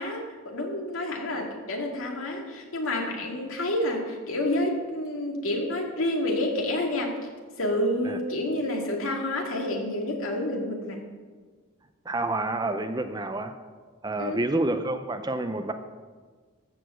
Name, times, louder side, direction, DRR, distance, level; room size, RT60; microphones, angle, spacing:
voice 1, 0.0-7.1 7.6-11.0 14.2-14.4, left 1 dB, 75° left, 0 dB, 2.2 m, -29 dB
voice 2, 12.0-13.5 14.0-15.7, right 2 dB, 20° right, 8 dB, 0.5 m, -28 dB
14.0 x 5.0 x 7.6 m, 1.5 s
head